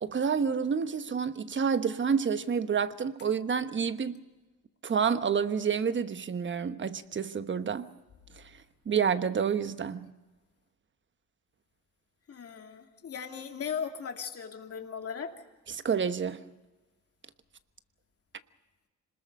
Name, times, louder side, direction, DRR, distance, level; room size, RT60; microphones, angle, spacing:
voice 1, 0.0-4.1 4.8-7.9 8.4-8.5 8.9-10.1 15.7-16.4, right 6 dB, 40° right, 1.2 m, -29 dB
voice 2, 12.3-15.3, left 7 dB, 50° left, 2.8 m, -37 dB
26.5 x 20.5 x 5.4 m
cardioid pair, 90°, 30 cm